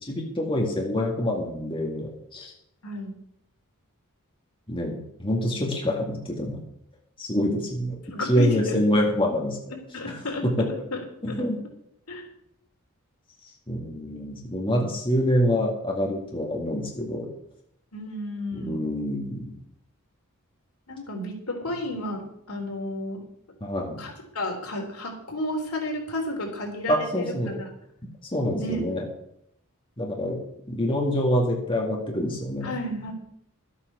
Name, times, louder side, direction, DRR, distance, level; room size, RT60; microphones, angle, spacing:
voice 1, 0.0-2.5 4.7-6.6 7.2-9.6 10.1-10.5 11.2-11.6 13.7-17.3 18.5-19.5 23.6-24.0 26.9-27.6 28.3-29.0 30.0-30.4 30.7-32.7, equal, 25° left, 0 dB, 2.0 m, -26 dB
voice 2, 2.8-3.2 8.1-9.1 9.9-10.4 10.9-11.0 11.3-11.5 12.1-12.3 17.9-18.9 20.9-23.2 24.0-27.7 28.6-28.8 32.6-33.1, left 1 dB, 80° left, 1 dB, 3.5 m, -32 dB
12.5 x 8.5 x 6.8 m, 0.75 s
head